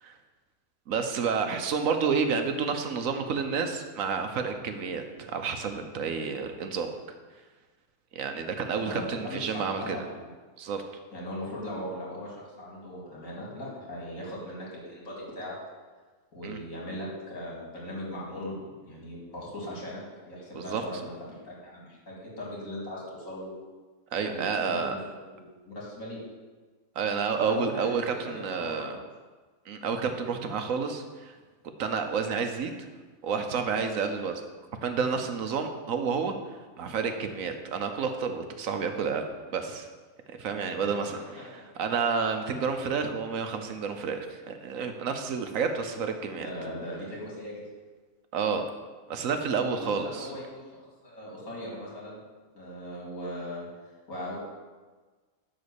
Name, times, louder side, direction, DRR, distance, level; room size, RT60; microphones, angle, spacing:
voice 1, 0.9-6.9 8.1-10.0 10.6-10.8 16.4-16.6 20.5-20.8 24.1-24.9 27.0-28.9 29.7-31.4 31.8-32.7 33.2-34.4 34.8-36.3 36.8-39.3 39.5-39.9 40.3-46.5 48.3-48.7 49.1-50.3, right 5 dB, 70° right, 6 dB, 1.1 m, -30 dB
voice 2, 8.8-10.3 11.1-15.6 16.3-18.6 18.8-20.0 20.3-21.1 21.4-23.5 24.2-26.2 27.4-27.8 28.2-29.0 41.4-41.5 46.3-47.6 49.6-52.2 52.5-53.6 54.1-54.4, left 1 dB, 65° left, -4 dB, 2.8 m, -39 dB
10.5 x 4.0 x 6.9 m, 1.4 s
omnidirectional pair, 1.5 m